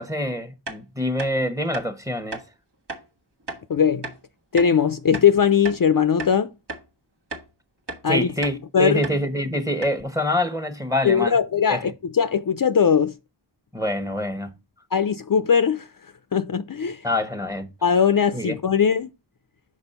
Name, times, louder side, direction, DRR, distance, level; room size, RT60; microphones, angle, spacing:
voice 1, 0.0-2.4 8.1-11.4 11.7-11.8 13.7-14.5 17.0-17.7 18.3-18.6, left 1 dB, 10° right, 1.0 m, -25 dB
sound 1, 0.7-0.8 1.2-1.3 1.7-1.9 2.3-2.5 2.9-3.0 3.5-3.6 4.0-4.2 4.6-4.7 5.1-5.9 6.2-6.4 6.7-6.8 7.3-7.5 7.9-8.0 8.4-8.6 9.0-9.2 9.5-9.6 9.8-10.0, right 2 dB, 70° right, 1.4 m, -34 dB
voice 2, 3.7-4.0 4.5-6.5 8.0-8.3 8.7-9.0 11.0-13.1 14.9-15.9 16.3-17.0 17.8-19.1, left 7 dB, 50° left, 0.5 m, -20 dB
6.1 x 4.7 x 5.5 m
wide cardioid pair, 45°, 43 cm